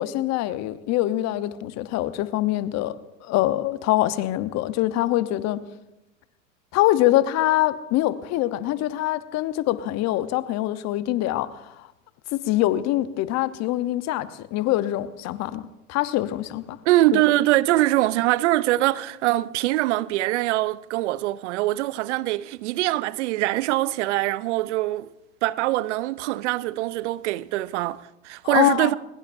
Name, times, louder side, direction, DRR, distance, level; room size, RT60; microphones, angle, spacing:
voice 1, 0.0-3.0 3.2-5.6 6.7-11.9 12.5-16.8 17.1-17.2 28.4-29.0, left 15 dB, 45° left, 1.0 m, -24 dB
voice 2, 16.9-25.1 25.4-28.9, right 16 dB, 65° right, 0.6 m, -23 dB
22.0 x 20.5 x 2.6 m
hypercardioid pair, 95°, 38 cm